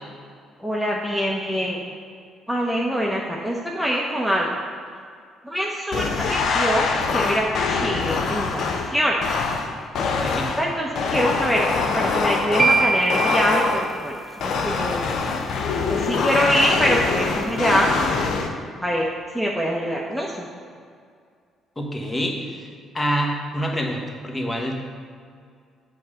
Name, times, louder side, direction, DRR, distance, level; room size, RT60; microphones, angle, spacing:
voice 1, 0.6-1.8 2.5-4.5 5.4-9.2 10.6-11.7 11.9-15.0 15.9-17.9 18.8-19.1 19.3-20.5, equal, 5° left, -3 dB, 0.9 m, -24 dB
sound 1, 5.9-14.0 14.4-18.5, left 4 dB, 60° left, 0.7 m, -24 dB
voice 2, 10.1-10.5 21.8-22.7 22.9-24.8, equal, 25° left, 0 dB, 1.3 m, -26 dB
sound 2, 12.6-14.7, right 4 dB, 25° right, 0.5 m, -24 dB
7.7 x 3.8 x 6.5 m, 2.2 s
hypercardioid pair, 50°, 0 cm